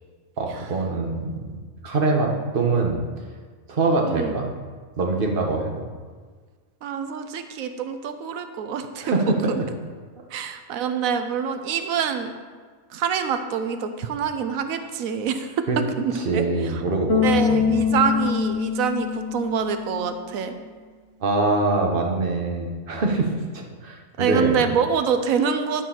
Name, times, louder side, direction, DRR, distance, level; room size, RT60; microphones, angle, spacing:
voice 1, 0.4-1.4 1.8-3.0 3.7-4.5 5.0-5.8 9.0-9.5 15.7-15.8 16.2-17.7 21.2-24.6, right 3 dB, 40° right, 1 dB, 1.2 m, -24 dB
voice 2, 6.8-9.2 9.5-9.6 10.3-12.3 12.9-16.8 17.2-20.5 24.2-25.8, right 7 dB, 75° right, 8 dB, 1.1 m, -26 dB
Bass guitar, 17.1-20.2, left 7 dB, 50° left, 1.1 m, -24 dB
11.0 x 4.6 x 5.7 m, 1.6 s
omnidirectional pair, 1.5 m